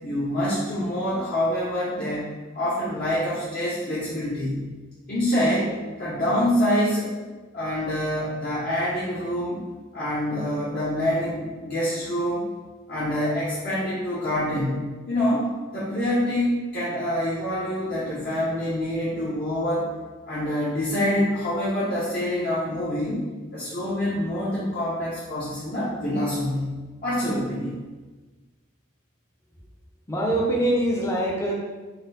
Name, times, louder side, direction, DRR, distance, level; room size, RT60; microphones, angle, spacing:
voice 1, 0.0-4.6 5.1-5.7 6.0-7.1 7.5-9.6 9.9-12.5 12.9-19.9 20.3-23.2 23.5-27.8, left 1 dB, 45° left, -10 dB, 0.8 m, -26 dB
voice 2, 30.1-31.5, right 1 dB, 15° left, -3 dB, 0.5 m, -23 dB
4.1 x 2.1 x 3.9 m, 1.3 s
head